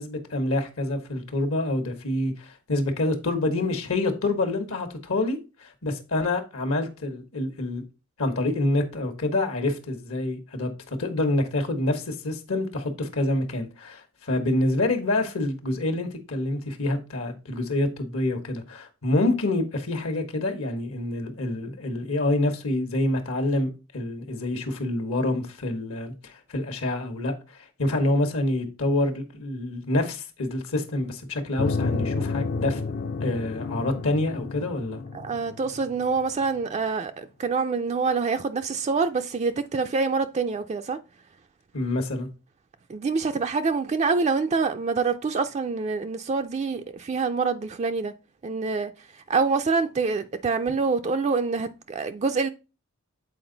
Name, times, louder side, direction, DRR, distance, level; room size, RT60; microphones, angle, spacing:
voice 1, 0.0-7.8 8.2-32.8 33.2-35.0 41.7-42.3, left 2 dB, 70° left, 1.2 m, -27 dB
sound 1, 31.6-36.5, left 4 dB, 45° left, 0.5 m, -31 dB
voice 2, 35.1-41.0 42.9-48.1 48.4-48.9 49.3-52.5, right 4 dB, 30° right, 0.3 m, -26 dB
7.8 x 4.4 x 3.9 m
head